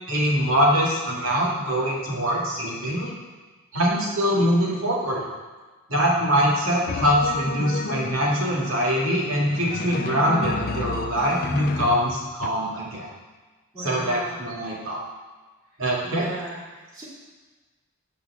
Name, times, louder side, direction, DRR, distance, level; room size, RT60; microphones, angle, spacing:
voice 1, 0.1-3.1 3.7-5.2 5.9-13.1 13.8-15.0 15.8-16.3, equal, 75° right, -3 dB, 2.2 m, -23 dB
Drum, 6.9-8.3 9.4-12.5, left 3 dB, 45° left, 0.5 m, -31 dB
voice 2, 13.7-14.4 16.0-17.0, right 1 dB, 20° right, -11 dB, 2.6 m, -37 dB
8.8 x 4.8 x 6.2 m, 1.3 s
head